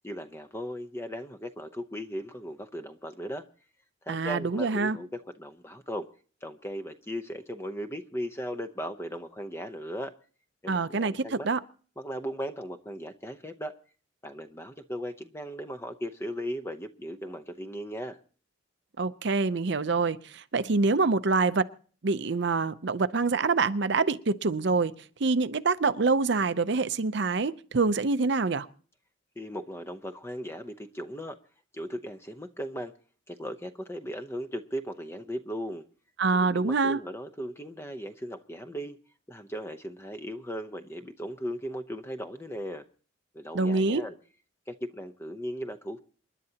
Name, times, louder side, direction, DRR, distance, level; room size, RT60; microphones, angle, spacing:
voice 1, 0.0-3.4 4.1-6.1 6.4-10.1 10.6-11.5 12.0-13.7 14.2-18.2 29.4-31.4 31.7-32.9 33.3-35.8 36.3-39.0 39.3-42.8 43.3-44.1 44.7-46.0, equal, 10° left, 0.7 m, -37 dB
voice 2, 4.1-5.0 10.7-11.6 19.0-21.6 22.0-24.9 25.2-28.7 36.2-37.0 43.5-44.0, right 4 dB, 55° right, 0.6 m, -26 dB
28.0 x 11.0 x 2.9 m
head